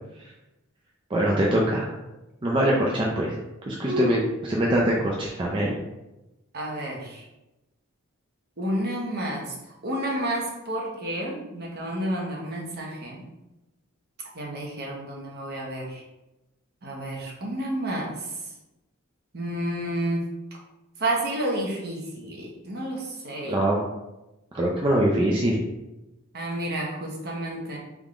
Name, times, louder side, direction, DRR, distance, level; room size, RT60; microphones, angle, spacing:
voice 1, 1.1-1.9 2.4-3.4 3.7-4.2 4.5-5.8 23.4-23.8 24.5-25.6, right 1 dB, 25° right, -3 dB, 0.5 m, -23 dB
voice 2, 3.8-4.2 6.5-7.3 8.6-13.2 14.3-16.0 16.8-18.4 19.3-20.3 21.0-23.6 26.3-27.8, right 1 dB, 50° right, -1 dB, 1.0 m, -30 dB
3.6 x 3.5 x 3.7 m, 0.98 s
head